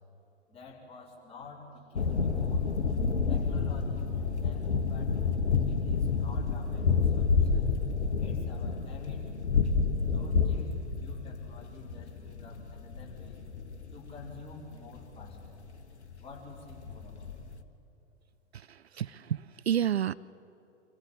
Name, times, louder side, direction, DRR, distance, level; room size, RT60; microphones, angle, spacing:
voice 1, 0.5-2.7 3.3-5.1 5.7-7.6 8.2-9.3 10.0-13.4 13.9-15.6 16.2-17.3, left 3 dB, 15° left, -3 dB, 4.9 m, -49 dB
sound 1, 2.0-17.6, left 5 dB, 75° left, 1.5 m, -29 dB
voice 2, 18.7-20.1, right 10 dB, 65° right, 18 dB, 0.5 m, -30 dB
26.0 x 16.0 x 9.4 m, 2.8 s
figure-of-eight pair, 105°, 34 cm